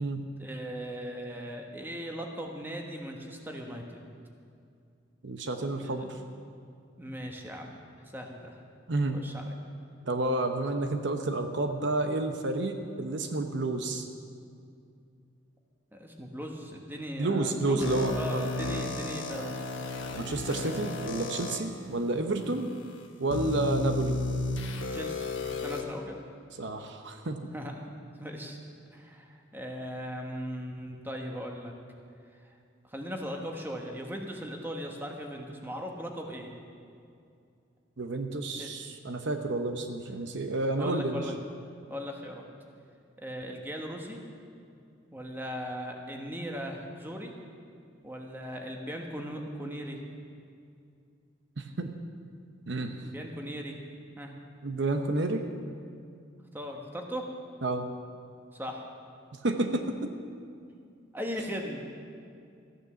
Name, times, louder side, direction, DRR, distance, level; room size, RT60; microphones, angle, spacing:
voice 1, 0.4-4.1 5.8-6.1 7.0-7.8 8.1-8.6 9.1-9.5 15.9-19.5 24.9-25.3 25.6-26.2 27.5-27.9 28.2-28.6 28.9-31.7 32.9-36.5 38.6-38.7 40.8-41.3 41.9-42.4 43.2-44.2 45.1-47.3 48.0-50.0 53.0-53.7 54.2-54.3 56.5-57.2 58.5-58.8 61.1-61.9, equal, 10° right, 1 dB, 1.3 m, -38 dB
voice 2, 5.2-6.2 8.9-9.2 10.0-14.1 17.2-18.5 20.1-22.7 23.2-24.2 26.6-27.4 38.0-41.2 51.6-51.9 52.7-53.1 54.6-55.4 57.6-57.9 59.4-60.1, right 2 dB, 65° right, 6 dB, 0.8 m, -30 dB
sound 1, 17.8-21.6 22.3-22.4 23.3-25.8, left 2 dB, 75° left, 1.2 m, -33 dB
14.0 x 9.3 x 6.9 m, 2.4 s
head